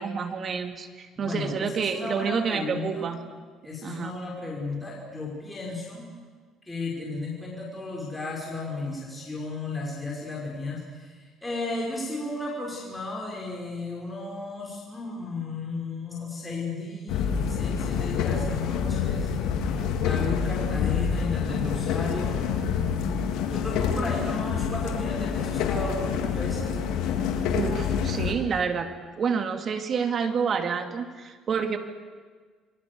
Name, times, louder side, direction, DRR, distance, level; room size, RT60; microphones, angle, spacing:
voice 1, 0.0-3.2 3.8-4.1 27.5-28.9 29.2-31.8, right 6 dB, 45° right, 7 dB, 2.5 m, -28 dB
voice 2, 1.2-3.1 3.6-6.1 6.7-19.3 20.0-23.0 23.5-26.7, left 3 dB, 10° left, -4 dB, 5.6 m, -34 dB
sound 1, 17.1-28.3, left 7 dB, 80° left, 3.2 m, -27 dB
28.5 x 22.5 x 7.0 m, 1.5 s
cardioid pair, 110°, 0 cm